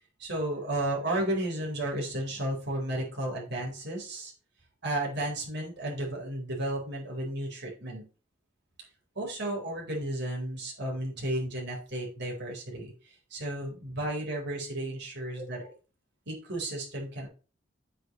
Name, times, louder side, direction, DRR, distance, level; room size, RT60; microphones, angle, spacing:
voice 1, 0.2-4.3 4.8-8.0 9.2-15.7 16.3-17.3, right 1 dB, 60° right, -2 dB, 4.1 m, -33 dB
8.3 x 7.8 x 3.1 m, 0.35 s
head